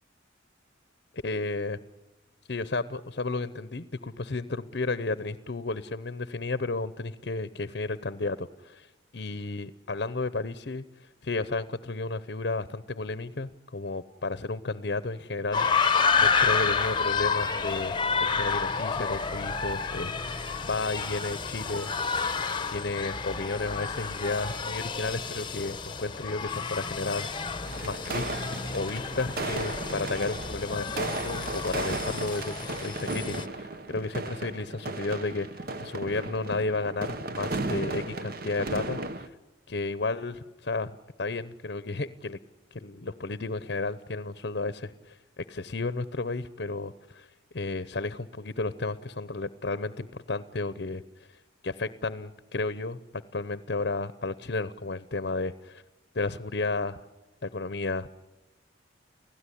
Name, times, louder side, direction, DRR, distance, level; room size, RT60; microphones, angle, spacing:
voice 1, 1.1-1.8 2.5-8.9 9.1-10.8 11.2-22.2 22.7-39.3 39.7-42.4 42.7-47.3 47.5-51.0 51.6-53.0 53.3-55.8 56.1-57.0 57.4-58.1, left 3 dB, 55° left, 15 dB, 0.8 m, -33 dB
sound 1, 15.5-33.5, left 5 dB, 25° left, 0.9 m, -30 dB
sound 2, 27.7-39.3, right 2 dB, 50° right, 1.2 m, -35 dB
30.0 x 16.5 x 9.9 m, 1.1 s
head